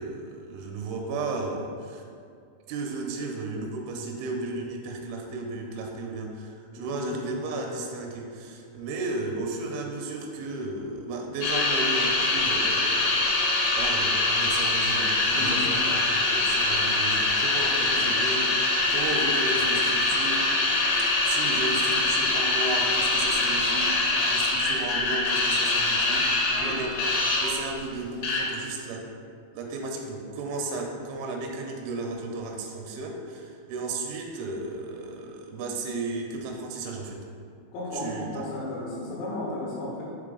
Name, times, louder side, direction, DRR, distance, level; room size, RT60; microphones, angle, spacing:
voice 1, 0.0-2.0 2.7-16.0 16.3-20.4 21.2-27.0 27.4-29.1 29.5-37.2 37.9-38.4, right 2 dB, 90° right, 1 dB, 3.1 m, -34 dB
voice 2, 6.8-7.2 15.3-15.7 17.8-18.2 26.5-26.8 37.7-40.0, left 2 dB, 85° left, -7 dB, 3.4 m, -34 dB
sound 1, 11.4-27.7 28.2-28.4, left 2 dB, 70° left, 2.1 m, -24 dB
7.4 x 3.5 x 3.8 m, 2.3 s
omnidirectional pair, 5.3 m